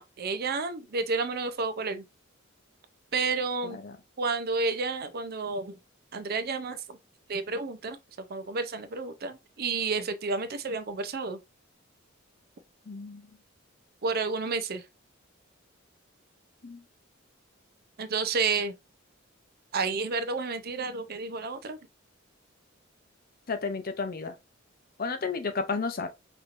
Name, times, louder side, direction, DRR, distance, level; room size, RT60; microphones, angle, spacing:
voice 1, 0.0-2.0 3.1-3.8 4.2-5.8 6.1-7.0 7.3-8.0 8.3-11.4 14.0-14.9 18.0-18.7 19.7-21.8, right 4 dB, 50° right, 0.6 m, -30 dB
voice 2, 3.6-3.9 12.9-13.2 16.6-16.8 23.5-24.4 25.0-26.1, left 4 dB, 45° left, 0.7 m, -32 dB
5.4 x 2.9 x 2.5 m
head